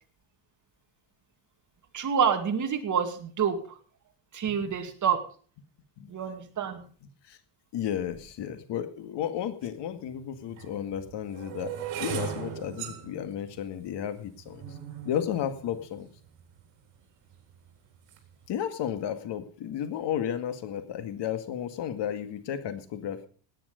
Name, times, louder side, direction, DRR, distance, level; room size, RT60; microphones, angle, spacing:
voice 1, 1.9-3.8 4.3-5.2 6.1-6.8, right 7 dB, 35° right, 5 dB, 2.4 m, -27 dB
voice 2, 7.7-14.8 15.0-16.1 18.5-23.3, left 9 dB, 55° left, 9 dB, 2.0 m, -33 dB
sound 1, 9.6-9.7 10.5-16.6 17.3-17.7 17.9-18.3, right 9 dB, 70° right, 4.2 m, -39 dB
17.5 x 9.3 x 5.2 m, 0.42 s
cardioid pair, 130°, 50 cm